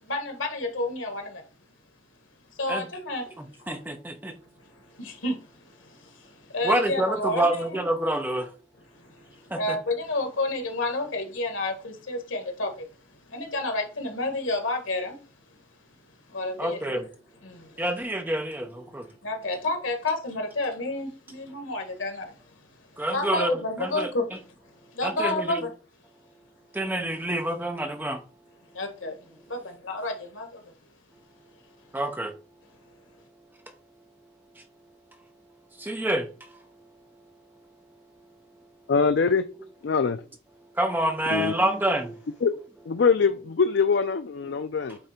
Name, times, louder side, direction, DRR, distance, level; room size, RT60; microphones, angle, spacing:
voice 1, 0.0-1.4 2.6-3.3 3.5-3.7 4.7-7.7 8.9-12.9 13.3-15.2 16.3-16.9 17.4-17.7 19.2-22.6 23.1-24.3 24.9-25.7 28.7-30.6, left 2 dB, 85° left, 1.7 m, -30 dB
voice 2, 3.4-4.3 6.6-8.5 9.5-9.8 16.6-17.1 17.8-19.1 23.0-24.1 25.0-25.6 26.7-28.2 31.9-32.3 35.8-36.6 40.7-42.2, right 1 dB, 10° right, 0.7 m, -27 dB
voice 3, 38.9-39.4 39.8-40.2 41.3-41.5 42.4-42.5 42.9-45.0, left 5 dB, 60° left, 0.4 m, -23 dB
8.7 x 3.2 x 4.4 m
head